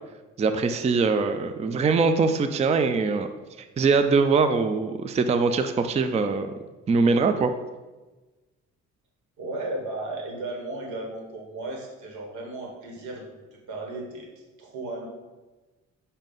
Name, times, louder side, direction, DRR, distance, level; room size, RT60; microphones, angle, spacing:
voice 1, 0.4-3.3 3.8-6.5 6.9-7.5, right 4 dB, 20° right, 8 dB, 0.4 m, -22 dB
voice 2, 9.4-15.1, right 2 dB, 85° right, 0 dB, 1.6 m, -35 dB
7.2 x 2.7 x 5.3 m, 1.2 s
cardioid pair, 90°, 30 cm